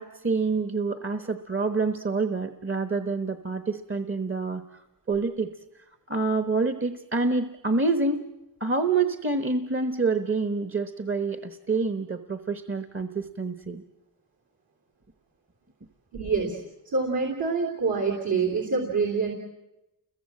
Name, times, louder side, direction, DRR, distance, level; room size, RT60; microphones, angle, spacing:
voice 1, 0.0-4.8 5.1-5.6 6.1-8.2 8.6-13.8, right 3 dB, 35° right, 9 dB, 1.1 m, -27 dB
voice 2, 16.1-16.6 16.9-19.3, right 4 dB, 70° right, 1 dB, 3.7 m, -26 dB
29.5 x 22.5 x 7.7 m, 0.98 s
wide cardioid pair, 75°, 37 cm